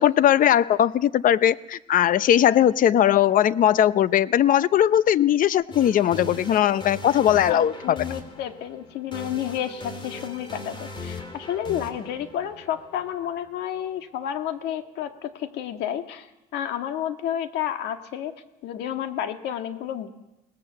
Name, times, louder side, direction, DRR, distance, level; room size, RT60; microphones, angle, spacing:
voice 1, 0.0-8.0, left 11 dB, 55° left, 17 dB, 0.7 m, -19 dB
sound 1, 5.7-13.6, left 2 dB, 30° left, 3.2 m, -39 dB
voice 2, 7.5-16.3 16.5-18.3 18.6-20.1, left 10 dB, 80° left, 7 dB, 1.8 m, -31 dB
21.5 x 18.5 x 7.8 m, 0.94 s
cardioid pair, 110°, 17 cm